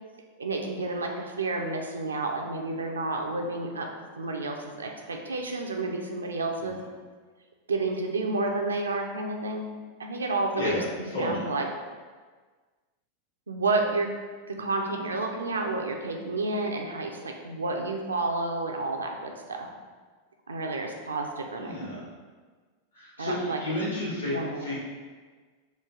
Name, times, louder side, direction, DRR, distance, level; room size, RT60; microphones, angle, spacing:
voice 1, 0.4-3.9 4.2-6.8 7.7-9.7 10.0-10.8 11.2-11.7 13.5-14.1 14.5-19.7 20.5-21.7 23.2-23.6 24.3-24.7, right 3 dB, 75° right, 2 dB, 0.4 m, -30 dB
voice 2, 11.1-11.5 21.6-22.0 22.9-24.3 24.6-24.7, left 1 dB, 70° left, -8 dB, 1.1 m, -31 dB
3.1 x 2.3 x 3.6 m, 1.4 s
figure-of-eight pair, 90°, 0 cm